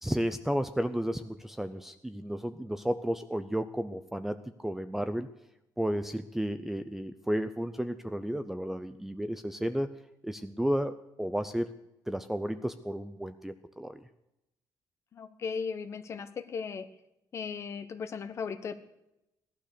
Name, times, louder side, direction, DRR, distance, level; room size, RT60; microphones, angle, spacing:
voice 1, 0.0-5.3 5.8-9.9 10.2-11.7 12.1-14.0, equal, 5° right, 9 dB, 0.5 m, -32 dB
voice 2, 15.1-16.9 17.3-18.7, left 5 dB, 40° left, 11 dB, 1.1 m, -37 dB
17.5 x 12.0 x 6.7 m, 0.88 s
cardioid pair, 170°, 8 cm